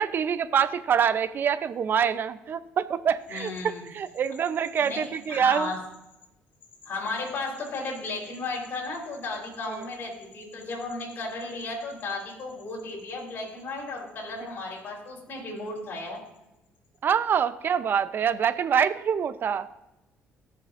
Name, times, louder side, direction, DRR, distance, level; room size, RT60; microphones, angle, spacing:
voice 1, 0.0-5.7 17.0-19.7, right 7 dB, 50° right, 13 dB, 0.6 m, -25 dB
voice 2, 3.3-3.9 4.8-5.8 6.9-16.2, left 3 dB, 50° left, -2 dB, 4.0 m, -34 dB
18.5 x 6.8 x 2.6 m, 0.93 s
cardioid pair, 90°, 5 cm